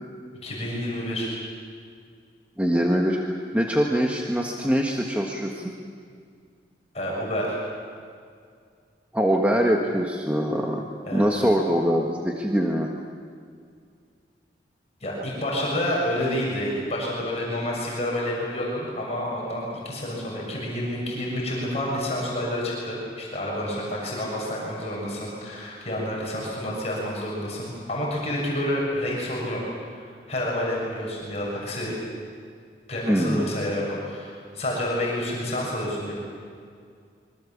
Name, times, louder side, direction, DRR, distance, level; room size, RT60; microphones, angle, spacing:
voice 1, 0.4-1.3 6.9-7.7 11.1-11.3 15.0-29.6 29.9-30.0 30.3-32.0 32.9-36.1, left 1 dB, 35° left, -4 dB, 6.9 m, -29 dB
voice 2, 2.6-5.7 9.1-12.9 33.0-33.5, equal, 10° right, 0 dB, 1.5 m, -23 dB
26.0 x 24.0 x 7.3 m, 2.2 s
head